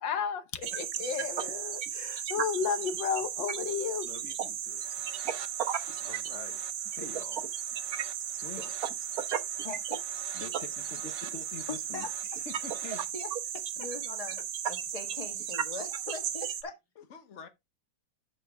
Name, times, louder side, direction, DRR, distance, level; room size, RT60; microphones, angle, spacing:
voice 1, 0.0-4.1, left 7 dB, 85° left, 1.8 m, -33 dB
sound 1, 0.6-16.6, right 9 dB, 60° right, 1.3 m, -35 dB
voice 2, 4.0-4.9 6.0-7.4 8.4-8.8 10.3-13.1 13.5-13.9 14.6-14.7 17.0-17.5, left 6 dB, 50° left, 1.1 m, -46 dB
sound 2, 4.6-13.1, right 10 dB, 80° right, 1.6 m, -50 dB
voice 3, 9.3-10.0 11.7-12.1 13.1-13.3 13.8-14.4 14.7-16.8, left 4 dB, 20° left, 1.8 m, -41 dB
8.2 x 6.8 x 3.6 m
omnidirectional pair, 2.0 m